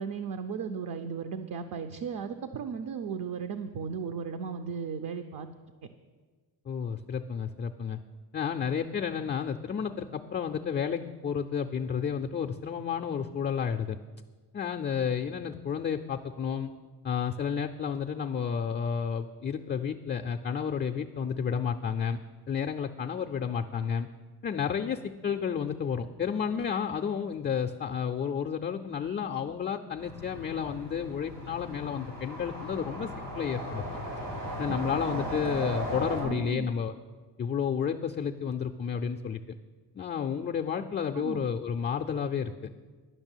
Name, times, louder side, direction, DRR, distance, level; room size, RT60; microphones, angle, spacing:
voice 1, 0.0-5.5 34.7-34.8 36.2-36.7 41.1-41.5, right 6 dB, 55° right, 8 dB, 0.6 m, -36 dB
voice 2, 6.7-8.0 8.3-14.0 14.5-16.7 17.0-22.2 22.5-24.1 24.4-33.1 33.3-33.8 34.6-36.9 37.4-39.6 39.9-42.7, left 7 dB, 30° left, 4 dB, 0.3 m, -31 dB
sound 1, 30.0-36.2, right 1 dB, 85° right, 4.4 m, -37 dB
11.0 x 6.0 x 8.9 m, 1.4 s
cardioid pair, 145°, 40 cm